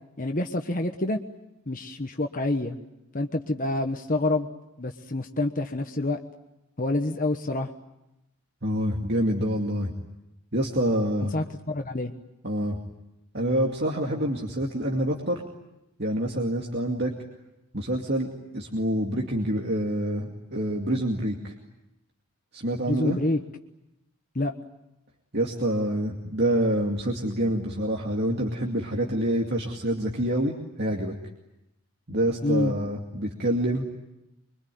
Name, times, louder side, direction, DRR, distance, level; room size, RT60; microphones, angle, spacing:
voice 1, 0.2-1.2 1.7-2.8 3.1-4.5 4.8-6.2 6.8-7.7 11.2-12.1 22.9-23.4 24.3-24.5 32.4-32.7, left 2 dB, 40° left, 5 dB, 1.2 m, -27 dB
voice 2, 8.6-9.9 10.5-11.3 12.4-12.8 13.3-15.4 16.0-17.1 17.7-21.5 22.5-23.2 25.3-31.1 32.1-33.8, right 1 dB, 50° right, 0 dB, 2.4 m, -27 dB
25.5 x 24.0 x 9.3 m, 0.89 s
head